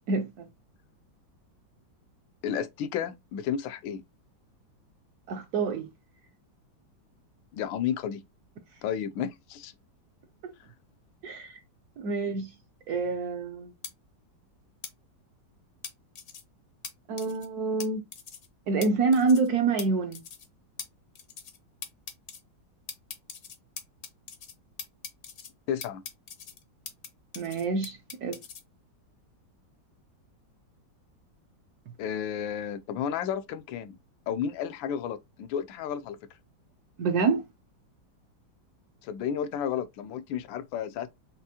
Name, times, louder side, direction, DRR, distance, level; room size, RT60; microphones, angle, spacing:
voice 1, 0.1-0.5 5.3-5.9 11.2-11.6 12.0-12.5 12.9-13.7 17.1-18.0 18.7-20.2 27.4-28.4 37.0-37.4, right 4 dB, 70° right, 1.0 m, -27 dB
voice 2, 2.4-4.0 7.5-8.2 8.8-9.7 25.7-26.0 32.0-34.0 34.3-36.2 39.0-41.1, left 8 dB, 80° left, 1.3 m, -32 dB
sound 1, 13.8-13.9 14.8-14.9 15.8-16.4 16.8-16.9 17.2-17.5 17.8-17.9 18.1-18.5 18.8-18.9 19.1-19.5 19.8-19.9 20.1-20.5 20.8-20.9 21.1-21.6 21.8-22.4 22.9-24.5 24.8-25.5 25.8-27.1 27.3-28.6, left 7 dB, 60° left, 0.8 m, -41 dB
5.9 x 2.5 x 2.7 m
omnidirectional pair, 2.1 m